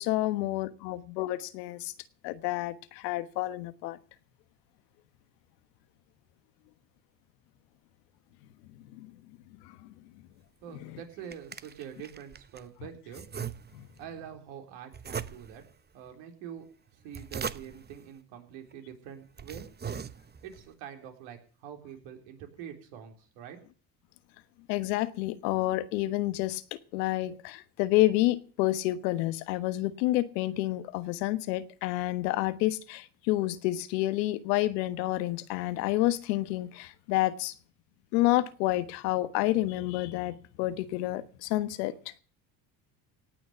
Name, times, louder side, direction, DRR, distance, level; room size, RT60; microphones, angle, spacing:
voice 1, 0.0-1.9 2.2-4.0 8.9-9.1 9.8-9.9 13.7-13.9 24.7-26.6 26.9-37.5 38.1-41.9, left 16 dB, 75° left, 1.4 m, -29 dB
voice 2, 10.6-13.2 14.0-15.6 15.9-16.6 16.9-19.7 20.4-23.6, right 9 dB, 70° right, 3.9 m, -45 dB
sound 1, 10.9-12.7 13.1-14.0 14.9-15.7 16.9-18.0 18.7-18.8 19.2-20.6, right 7 dB, 20° right, 0.9 m, -40 dB
18.0 x 6.4 x 8.1 m
hypercardioid pair, 75°, 49 cm